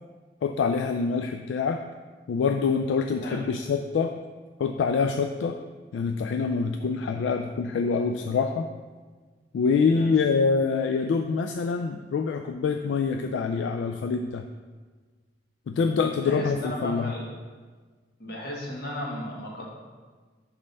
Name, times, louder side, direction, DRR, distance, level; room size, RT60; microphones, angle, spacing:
voice 1, 0.4-1.8 2.3-4.2 4.6-5.6 5.9-8.7 9.5-14.5 15.7-17.1, left 5 dB, 80° left, 6 dB, 0.3 m, -25 dB
voice 2, 16.2-17.3 18.2-19.7, left 1 dB, 60° left, -3 dB, 1.5 m, -35 dB
5.2 x 4.3 x 5.5 m, 1.4 s
head